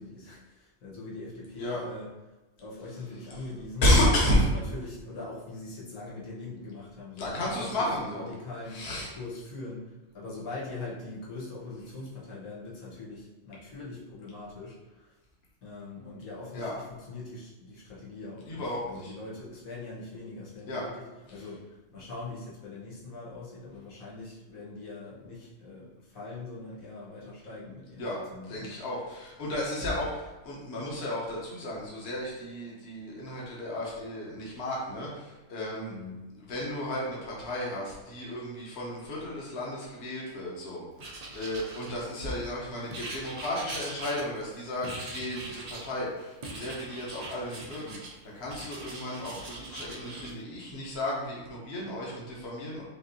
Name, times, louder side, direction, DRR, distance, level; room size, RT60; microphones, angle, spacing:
voice 1, 0.0-2.1 2.6-15.2 15.6-28.8 29.8-30.1 35.9-36.2, left 3 dB, 85° left, -6 dB, 1.5 m, -42 dB
voice 2, 3.8-4.4 7.2-8.3 8.7-9.1 16.5-16.7 18.5-19.1 20.7-20.8 28.0-28.2 28.5-35.9 36.5-52.8, left 1 dB, 50° left, -4 dB, 1.2 m, -32 dB
Writing, 41.0-42.3 42.9-44.5 44.8-45.9 46.4-48.1 48.5-50.3, right 2 dB, 65° right, 0.3 m, -41 dB
5.2 x 2.6 x 2.7 m, 1.1 s
omnidirectional pair, 1.4 m